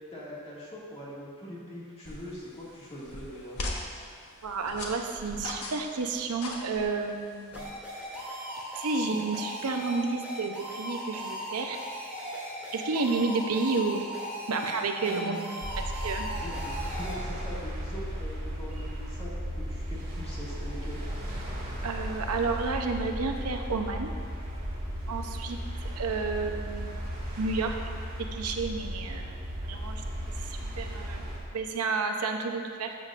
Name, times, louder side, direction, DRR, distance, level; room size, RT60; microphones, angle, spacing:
voice 1, 0.1-3.6 15.0-15.6 16.4-21.0, equal, 25° left, -7 dB, 2.0 m, -42 dB
sound 1, 2.0-8.2, left 2 dB, 90° left, 1.2 m, -41 dB
voice 2, 4.4-7.5 8.8-11.8 12.7-14.0 14.5-15.4 15.8-16.3 21.8-24.1 25.1-27.0 27.4-27.8 28.3-29.4 29.6-30.0 30.4-31.3 31.5-33.0, right 4 dB, 85° right, 4 dB, 0.7 m, -31 dB
sound 2, 7.5-17.1, equal, 5° right, 2.3 m, -38 dB
sound 3, 15.6-31.4, equal, 40° right, 2.1 m, -35 dB
13.0 x 7.5 x 2.5 m, 2.2 s
head